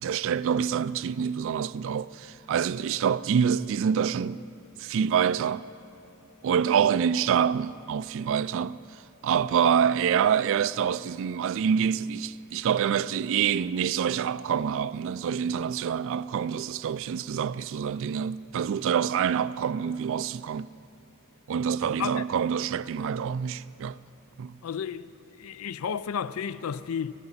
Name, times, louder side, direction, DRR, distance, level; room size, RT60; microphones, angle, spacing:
voice 1, 0.0-4.4 4.8-5.6 6.4-8.8 9.2-20.7 21.5-24.0 24.4-24.5, right 7 dB, 60° right, 0.3 m, -26 dB
voice 2, 21.9-22.2 24.6-27.1, left 7 dB, 70° left, 0.4 m, -32 dB
14.0 x 11.5 x 7.3 m
head